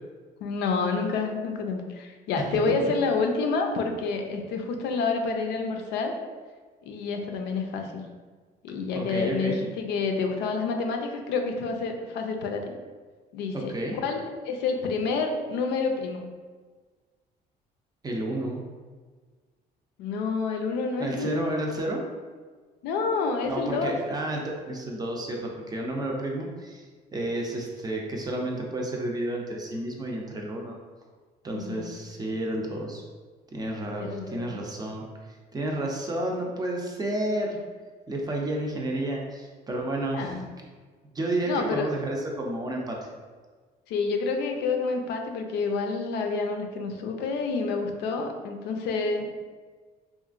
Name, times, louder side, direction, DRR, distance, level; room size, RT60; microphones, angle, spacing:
voice 1, 0.4-6.1 6.9-8.1 8.6-12.7 13.3-13.7 14.0-16.2 20.0-21.4 22.8-24.0 31.5-32.0 34.0-34.6 40.1-40.4 41.5-41.9 43.9-49.3, left 4 dB, 80° left, 4 dB, 0.4 m, -28 dB
voice 2, 8.9-9.6 13.5-14.0 18.0-18.6 21.0-22.0 23.5-30.8 31.4-33.0 33.5-35.0 35.5-37.6 38.1-40.4 41.1-43.0, right 1 dB, 25° right, 0 dB, 0.5 m, -31 dB
2.8 x 2.4 x 2.4 m, 1.4 s
cardioid pair, 110°, 17 cm